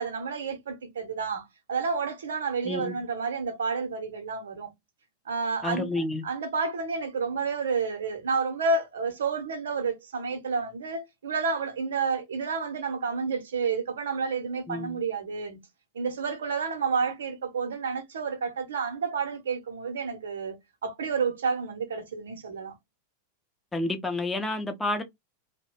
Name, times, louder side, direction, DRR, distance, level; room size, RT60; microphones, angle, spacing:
voice 1, 0.0-4.7 5.3-15.6 15.9-22.7, right 5 dB, 65° right, 0.7 m, -30 dB
voice 2, 2.6-3.0 5.6-6.2 14.7-15.0 23.7-25.0, left 2 dB, 10° left, 0.6 m, -30 dB
2.7 x 2.1 x 2.9 m
figure-of-eight pair, 90°, 0 cm